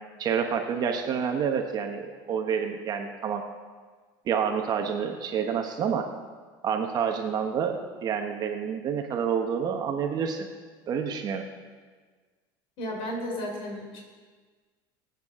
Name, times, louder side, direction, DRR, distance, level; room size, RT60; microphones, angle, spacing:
voice 1, 0.2-3.4 4.3-6.1 6.6-10.5 10.9-11.4, right 7 dB, 35° right, 4 dB, 1.1 m, -28 dB
voice 2, 12.8-14.0, left 1 dB, 50° left, -1 dB, 3.8 m, -33 dB
22.5 x 8.4 x 3.7 m, 1.4 s
supercardioid pair, 130°, 11 cm